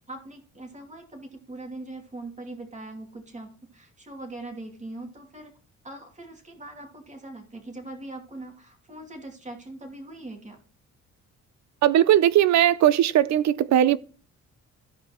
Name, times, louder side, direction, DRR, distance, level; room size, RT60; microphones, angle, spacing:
voice 1, 0.1-5.5 5.8-10.6, right 2 dB, 25° right, 2.7 m, -41 dB
voice 2, 11.8-14.0, right 11 dB, 65° right, 0.6 m, -19 dB
15.0 x 5.3 x 3.0 m
cardioid pair, 90°, 30 cm